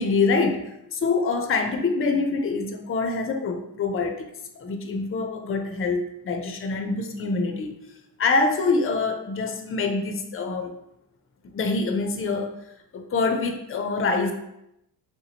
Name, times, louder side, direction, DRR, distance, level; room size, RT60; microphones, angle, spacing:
voice 1, 0.0-7.8 8.2-10.7 11.5-12.5 12.9-14.3, left 3 dB, 30° left, 5 dB, 0.5 m, -25 dB
3.6 x 2.9 x 2.8 m, 0.82 s
cardioid pair, 85°, 42 cm